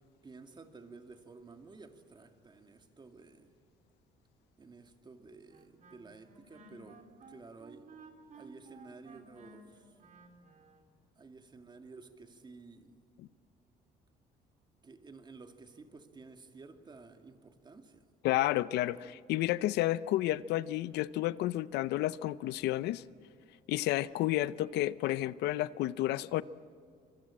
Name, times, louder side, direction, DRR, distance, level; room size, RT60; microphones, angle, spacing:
voice 1, 0.2-3.5 4.6-7.9 8.4-9.9 11.2-13.0 14.8-18.0, right 4 dB, 25° right, 2.1 m, -53 dB
Wind instrument woodwind instrument, 5.5-10.9, right 3 dB, 50° right, 3.2 m, -56 dB
Sigh, 6.4-7.0, left 3 dB, 40° left, 3.4 m, -59 dB
voice 2, 18.2-23.0 23.7-26.4, left 15 dB, 80° left, 0.6 m, -31 dB
26.0 x 22.5 x 8.7 m
cardioid pair, 110°, 17 cm